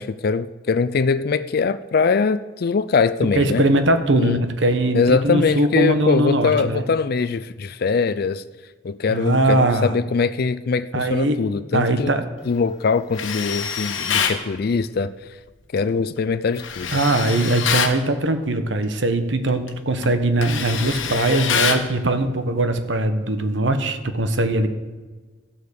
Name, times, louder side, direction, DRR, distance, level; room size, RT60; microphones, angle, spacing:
voice 1, 0.0-3.7 4.1-4.4 4.9-8.4 8.8-12.2 12.5-15.1 15.7-17.0, left 5 dB, 50° left, 12 dB, 0.4 m, -22 dB
voice 2, 3.3-6.8 9.1-9.9 10.9-11.4 11.7-12.3 16.9-24.7, right 2 dB, 65° right, 9 dB, 1.1 m, -21 dB
Tools, 13.1-14.4 16.6-18.0 19.5-19.7 20.0-21.9, left 7 dB, 80° left, 1.3 m, -25 dB
13.0 x 8.3 x 6.9 m, 1.4 s
head